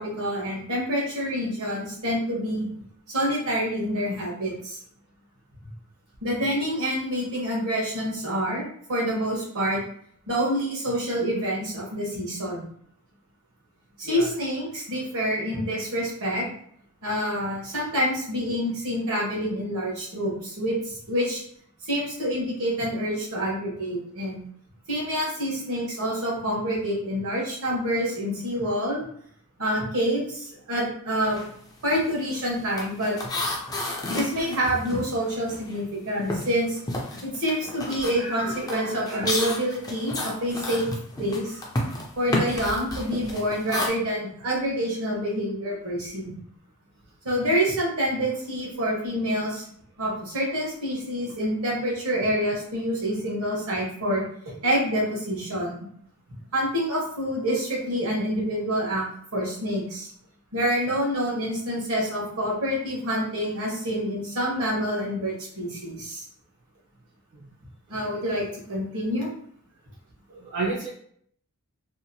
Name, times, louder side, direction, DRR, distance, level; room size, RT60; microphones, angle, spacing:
voice 1, 0.0-2.7 3.1-4.8 6.2-9.8 10.3-12.7 14.0-16.4 17.0-21.4 21.8-24.4 24.9-29.0 29.6-31.4 31.8-33.5 34.1-36.8 37.2-40.9 41.2-41.6 42.2-46.4 47.2-49.6 50.0-54.2 54.6-55.8 56.5-59.0 59.3-60.1 60.5-66.2 67.9-69.3, equal, 75° right, -3 dB, 1.1 m, -27 dB
sound 1, 31.3-31.5 31.8-35.9 36.2-43.9, left 1 dB, 15° left, 0.3 m, -31 dB
voice 2, 37.9-39.3 67.3-67.5 70.3-70.9, right 3 dB, 50° right, -5 dB, 0.5 m, -33 dB
2.8 x 2.1 x 2.6 m, 0.63 s
head